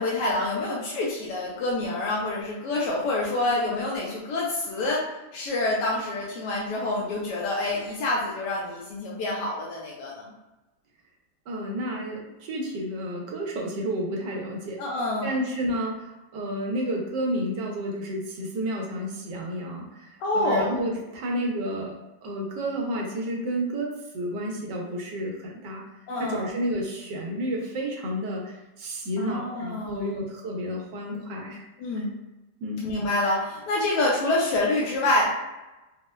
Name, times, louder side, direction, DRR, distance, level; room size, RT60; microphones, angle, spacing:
voice 1, 0.0-5.0 5.3-10.3 14.8-15.4 20.2-20.8 26.1-26.5 29.2-30.2 31.8-32.1 32.8-35.3, left 2 dB, 85° left, -4 dB, 1.2 m, -27 dB
voice 2, 11.5-14.8 15.2-16.1 16.3-22.0 22.2-25.8 26.2-31.6 32.0-32.1 32.6-32.9, equal, 85° right, -1 dB, 1.3 m, -31 dB
4.1 x 2.1 x 2.2 m, 1.0 s
omnidirectional pair, 1.8 m